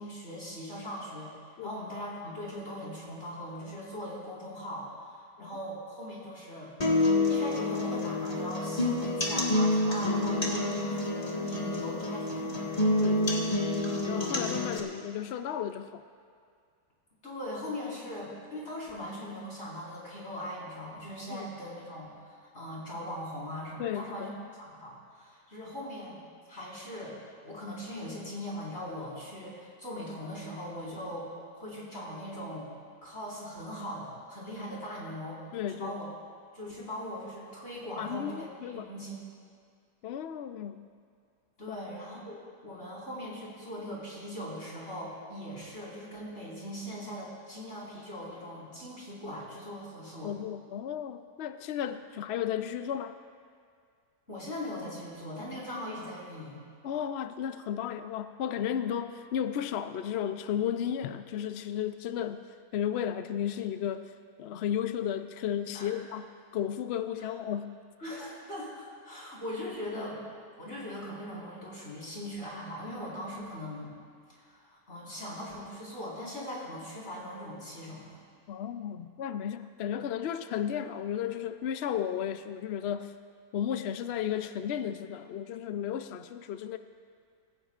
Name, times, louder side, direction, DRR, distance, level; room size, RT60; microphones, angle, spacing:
voice 1, 0.0-6.7 7.2-12.8 17.2-26.2 26.5-27.2 27.4-32.7 33.0-36.1 36.5-39.2 41.6-42.4 42.6-50.3 54.3-56.6 65.7-66.0 67.2-67.3 68.0-70.2 70.6-73.9 74.3-78.1, equal, 40° left, -7 dB, 5.2 m, -40 dB
sound 1, 6.8-14.8, left 2 dB, 25° left, 1.7 m, -28 dB
voice 2, 13.0-13.5 14.1-16.0 21.3-21.4 23.8-24.3 35.5-36.0 38.0-38.9 40.0-40.9 41.7-41.8 50.2-53.2 56.8-62.5 62.7-64.1 64.4-67.8 73.4-73.5 78.5-83.2 83.5-86.8, left 9 dB, 70° left, 9 dB, 0.6 m, -34 dB
25.5 x 15.5 x 2.5 m, 2.2 s
omnidirectional pair, 1.7 m